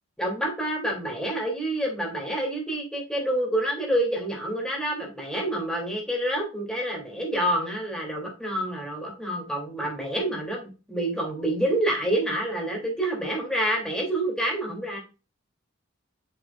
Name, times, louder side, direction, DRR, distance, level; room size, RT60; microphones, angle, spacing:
voice 1, 0.2-15.0, right 1 dB, 5° left, -1 dB, 3.1 m, -28 dB
7.9 x 6.1 x 2.5 m, 0.31 s
head